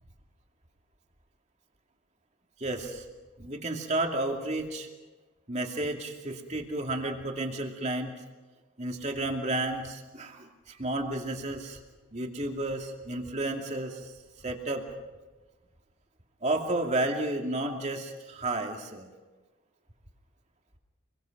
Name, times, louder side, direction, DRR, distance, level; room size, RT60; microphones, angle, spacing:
voice 1, 2.6-3.1 3.4-4.9 5.5-8.1 8.8-11.8 12.1-14.1 14.4-14.9 16.4-19.1, right 2 dB, 35° right, 2 dB, 2.5 m, -32 dB
28.0 x 22.5 x 6.0 m, 1.2 s
head